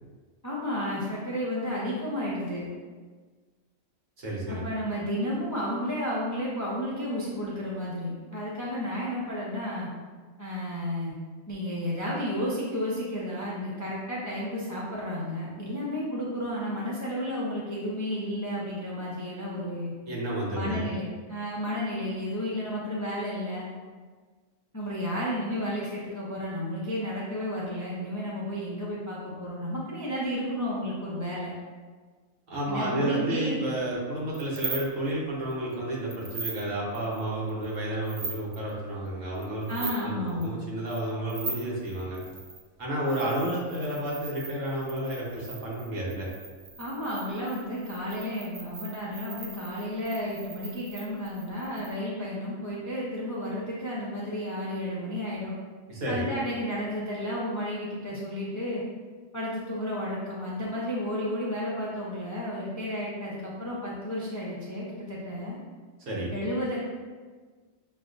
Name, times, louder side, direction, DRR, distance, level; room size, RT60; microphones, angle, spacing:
voice 1, 0.4-2.7 4.5-9.9 10.4-11.1 11.5-19.9 20.5-21.0 21.3-23.7 24.7-31.5 32.7-33.6 39.7-40.6 46.8-55.6 56.1-58.8 59.3-65.6 66.3-66.8, equal, 30° left, -6 dB, 0.3 m, -32 dB
voice 2, 4.2-4.7 20.1-20.9 32.5-42.2 42.8-46.3 55.9-56.3 66.1-66.3, right 1 dB, 75° right, -5 dB, 1.5 m, -31 dB
sound 1, 34.3-35.1 35.5-35.7 36.1-36.6 36.9-37.8 38.0-38.7 39.4-40.0 40.3-40.4 40.9-42.6 43.0-51.9, right 3 dB, 50° right, 0.8 m, -40 dB
6.4 x 2.4 x 2.5 m, 1.5 s
omnidirectional pair, 1.4 m